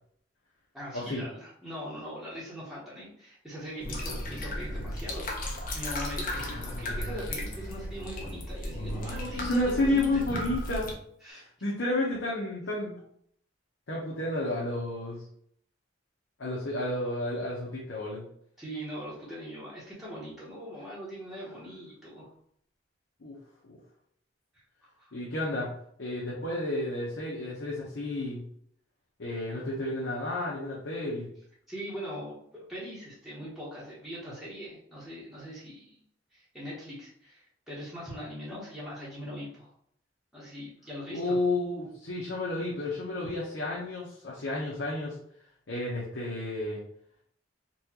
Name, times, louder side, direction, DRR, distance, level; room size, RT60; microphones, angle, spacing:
voice 1, 0.7-10.1 11.2-11.4 18.6-22.3 25.0-25.1 31.7-32.4 32.7-36.0 36.3-39.7 40.3-41.4, equal, ahead, -8 dB, 1.0 m, -41 dB
sound 1, 3.8-10.9, left 1 dB, 45° left, 0.7 m, -35 dB
voice 2, 9.4-10.9 11.3-13.0 13.9-15.2 16.4-18.2 23.2-23.4 23.6-23.8 25.1-25.7 26.0-28.4 29.2-31.3 41.1-45.2 45.7-46.8, left 2 dB, 75° left, -5 dB, 0.8 m, -31 dB
4.1 x 2.3 x 2.9 m, 0.66 s
head